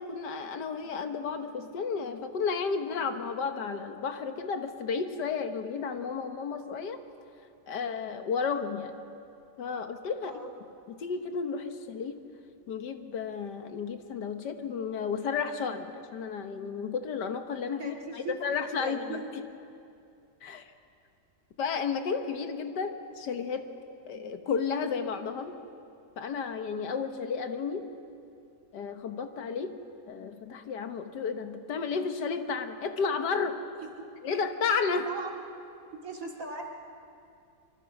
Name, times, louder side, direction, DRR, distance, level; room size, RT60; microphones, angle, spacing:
voice 1, 0.0-7.0 7.7-9.0 9.6-10.4 11.0-12.2 12.7-19.2 20.4-20.6 21.6-23.6 24.1-25.6 26.2-27.9 28.7-29.8 30.1-33.6 34.2-35.1, left 5 dB, 80° left, 7 dB, 1.8 m, -32 dB
voice 2, 17.8-18.4 18.8-19.3 33.8-34.1 34.9-35.3 36.0-36.6, right 3 dB, 50° right, 0 dB, 2.5 m, -39 dB
25.5 x 24.5 x 5.3 m, 2.5 s
omnidirectional pair, 1.8 m